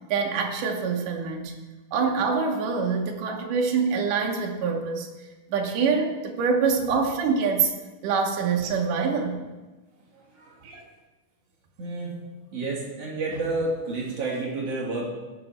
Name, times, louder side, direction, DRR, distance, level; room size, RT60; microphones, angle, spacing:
voice 1, 0.1-1.6 1.9-5.1 5.5-7.7 8.0-9.4 10.6-10.8, right 5 dB, 80° right, 2 dB, 2.7 m, -25 dB
voice 2, 11.8-12.2 12.5-15.1, right 2 dB, 50° right, -4 dB, 3.5 m, -30 dB
17.0 x 6.9 x 4.3 m, 1.2 s
omnidirectional pair, 3.6 m